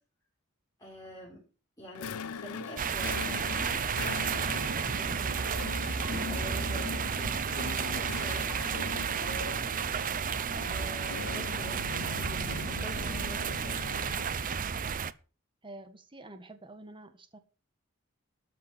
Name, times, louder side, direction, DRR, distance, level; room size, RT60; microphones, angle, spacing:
voice 1, 0.8-1.4 1.8-5.3 6.3-9.6 10.7-13.8, right 1 dB, 15° left, -4 dB, 4.3 m, -46 dB
sound 1, 2.0-14.5, left 5 dB, 90° left, 0.6 m, -41 dB
sound 2, 2.8-15.1, right 6 dB, 40° right, 0.6 m, -32 dB
voice 2, 15.6-17.4, right 2 dB, 25° right, 9 dB, 1.6 m, -48 dB
13.5 x 5.9 x 7.5 m, 0.36 s
head